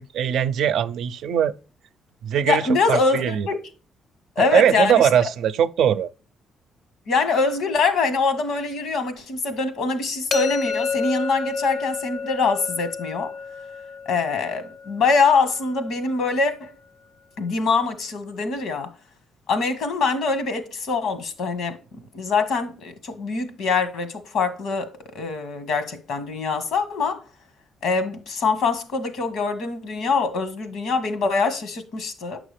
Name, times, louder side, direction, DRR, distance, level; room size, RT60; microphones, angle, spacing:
voice 1, 0.0-1.5 2.2-2.6 2.9-3.5 4.4-6.1, right 9 dB, 75° right, 0.5 m, -21 dB
voice 2, 2.5-3.5 4.3-5.1 7.1-13.3 14.0-16.7 17.4-18.9 19.5-21.8 22.1-27.2 27.8-32.4, left 4 dB, 75° left, 1.5 m, -24 dB
sound 1, 10.3-16.1, left 5 dB, 55° left, 0.8 m, -30 dB
9.0 x 6.0 x 3.3 m
cardioid pair, 90°, 0 cm